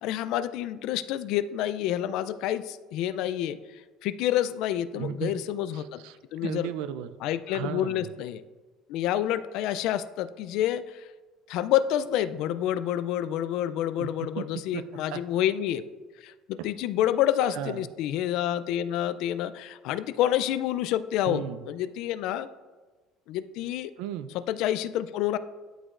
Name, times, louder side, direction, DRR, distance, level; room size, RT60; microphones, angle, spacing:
voice 1, 0.0-3.6 4.0-6.0 6.3-6.7 7.2-8.4 8.9-11.0 11.5-15.8 16.2-22.5 23.3-23.9 24.5-25.4, left 12 dB, 65° left, 14 dB, 0.3 m, -28 dB
voice 2, 4.9-5.4 5.7-7.2 7.5-8.1 14.0-14.8 15.1-15.2 16.6-16.7 17.5-17.9 21.3-21.7 24.0-24.3, right 10 dB, 90° right, 12 dB, 0.4 m, -35 dB
12.0 x 5.1 x 2.4 m, 1.3 s
cardioid pair, 165°, 0 cm